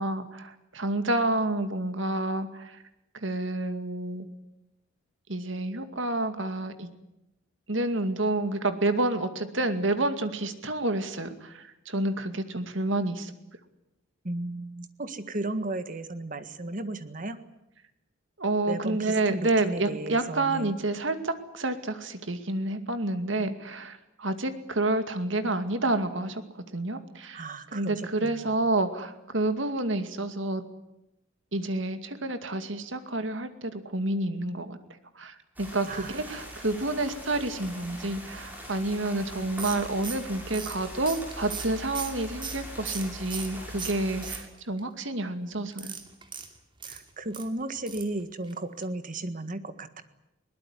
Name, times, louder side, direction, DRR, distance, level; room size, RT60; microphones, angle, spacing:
voice 1, 0.0-2.8 3.2-4.3 5.3-6.9 7.7-13.3 18.4-26.4 26.7-30.6 31.5-34.8 35.2-46.0, right 2 dB, 70° right, 9 dB, 2.4 m, -29 dB
voice 2, 14.2-17.4 18.7-20.7 27.3-28.5 35.9-36.1 46.8-50.0, right 2 dB, 40° right, 10 dB, 1.7 m, -35 dB
sound 1, 35.6-44.4, equal, 10° right, 7.2 m, -42 dB
sound 2, 39.6-43.5 43.8-44.8 45.7-47.5 47.9-48.2 48.4-48.5 48.8-48.9, right 6 dB, 25° right, 2.6 m, -38 dB
21.5 x 19.5 x 9.9 m, 0.88 s
head